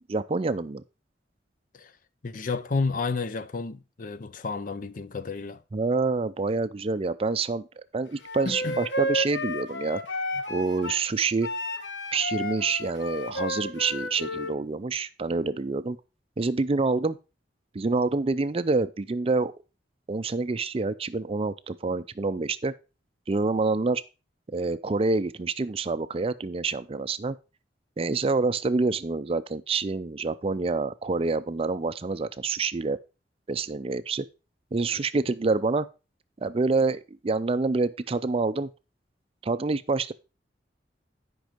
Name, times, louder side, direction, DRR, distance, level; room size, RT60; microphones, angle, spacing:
voice 1, 0.1-0.8 5.7-10.0 10.5-11.5 12.1-16.0 16.4-17.2 17.7-19.5 20.1-22.7 23.3-24.0 24.5-27.4 28.0-33.0 33.5-34.3 34.7-35.9 36.4-38.7 39.4-40.1, right 3 dB, 30° right, 0.4 m, -27 dB
voice 2, 2.2-5.6 8.5-8.8, left 4 dB, 50° left, 0.5 m, -31 dB
Wind instrument woodwind instrument, 8.2-11.0 11.4-14.5, left 1 dB, 90° left, 1.3 m, -32 dB
9.2 x 5.4 x 5.0 m
head